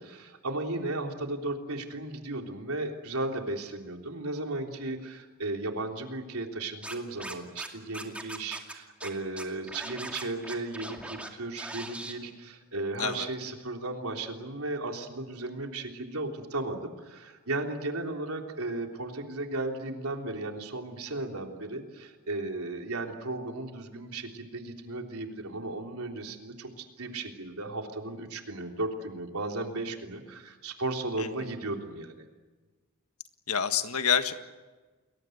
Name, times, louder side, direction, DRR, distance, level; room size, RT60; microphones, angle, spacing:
voice 1, 0.0-32.2, right 2 dB, 85° right, 3 dB, 3.5 m, -35 dB
Scratching (performance technique), 6.8-7.7 7.9-8.7 9.0-9.1 9.4-11.3 11.6-12.1, right 1 dB, 5° right, 2.4 m, -39 dB
voice 2, 33.5-34.3, left 7 dB, 85° left, 9 dB, 1.6 m, -27 dB
30.0 x 21.5 x 8.0 m, 1.3 s
head